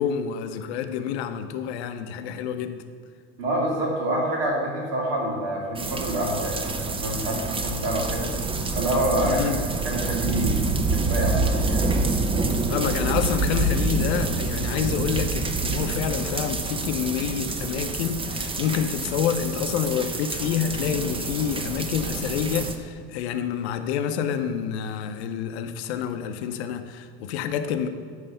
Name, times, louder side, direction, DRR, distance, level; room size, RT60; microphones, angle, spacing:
voice 1, 0.0-2.8 9.2-9.6 12.5-27.9, left 8 dB, 80° left, 9 dB, 0.7 m, -28 dB
voice 2, 3.4-8.3 8.7-9.6 9.8-11.9, right 1 dB, 75° right, -1 dB, 2.0 m, -27 dB
sound 1, 5.8-22.8, right 3 dB, 15° right, 0.6 m, -27 dB
9.1 x 3.3 x 6.8 m, 2.1 s
supercardioid pair, 95°, 32 cm